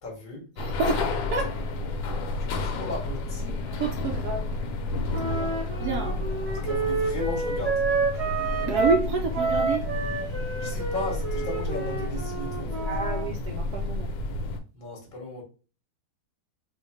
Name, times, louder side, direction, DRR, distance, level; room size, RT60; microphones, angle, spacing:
voice 1, 0.0-0.4 2.5-3.4 5.3-5.7 6.6-7.8 10.6-12.9 14.7-15.4, left 2 dB, 35° left, 0.9 m, -35 dB
sound 1, 0.6-14.6, left 2 dB, 75° left, 1.2 m, -31 dB
voice 2, 0.6-1.1 1.3-1.5 3.5-4.5 5.3-5.5 5.8-6.2 8.6-9.8 12.8-14.2, right 4 dB, 70° right, 0.9 m, -29 dB
Wind instrument woodwind instrument, 5.1-9.1 9.3-13.3, right 4 dB, 35° right, 0.6 m, -29 dB
3.1 x 2.1 x 4.2 m
omnidirectional pair, 2.1 m